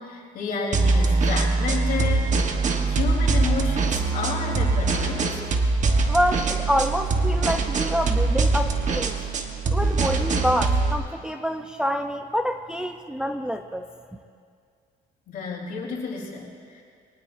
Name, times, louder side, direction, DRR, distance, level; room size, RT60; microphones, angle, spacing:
voice 1, 0.0-2.4 2.9-5.4 15.3-16.8, left 5 dB, 60° left, -2 dB, 3.6 m, -31 dB
sound 1, 0.7-10.9, right 3 dB, 45° right, 1.3 m, -23 dB
voice 2, 6.1-9.1 9.7-13.9, equal, 5° right, 5 dB, 0.5 m, -26 dB
23.0 x 18.0 x 2.7 m, 2.2 s
cardioid pair, 110°, 17 cm